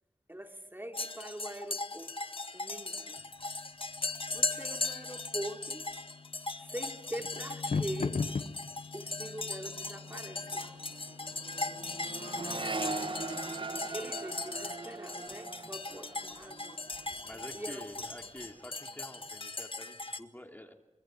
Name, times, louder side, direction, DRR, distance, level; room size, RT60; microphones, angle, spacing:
voice 1, 0.3-2.2 2.5-3.3 4.3-5.9 6.6-8.3 8.9-10.8 12.9-16.9 17.5-17.8, right 1 dB, 15° right, 4 dB, 3.4 m, -43 dB
sound 1, 0.9-20.2, left 3 dB, 50° left, 1.6 m, -39 dB
sound 2, 3.2-14.0, left 4 dB, 85° left, 1.1 m, -42 dB
Accelerating revving vroom, 9.6-9.8 10.0-17.6 17.9-18.5, right 3 dB, 45° right, 1.4 m, -41 dB
voice 2, 17.2-20.7, left 1 dB, 15° left, 4 dB, 2.9 m, -48 dB
25.5 x 25.5 x 9.2 m, 0.97 s
wide cardioid pair, 60°, 12 cm